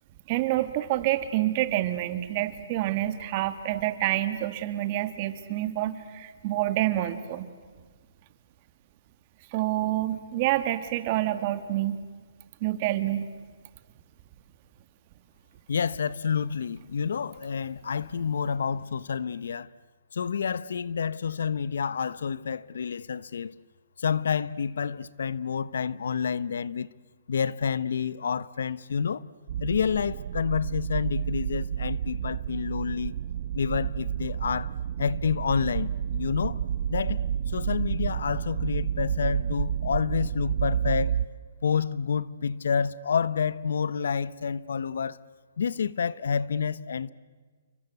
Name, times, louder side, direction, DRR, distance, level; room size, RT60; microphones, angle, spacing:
voice 1, 0.3-7.5 9.5-12.0 12.6-13.3, right 14 dB, 35° right, 1.9 m, -27 dB
voice 2, 15.7-19.7 20.1-23.5 24.0-26.9 27.3-29.2 29.6-33.1 33.5-34.7 35.0-36.6 36.9-41.2 41.6-45.2 45.6-47.1, left 6 dB, 75° left, 0.9 m, -29 dB
sound 1, 29.5-41.2, right 9 dB, 50° right, 0.8 m, -30 dB
29.0 x 24.0 x 8.2 m
hypercardioid pair, 160°, 0 cm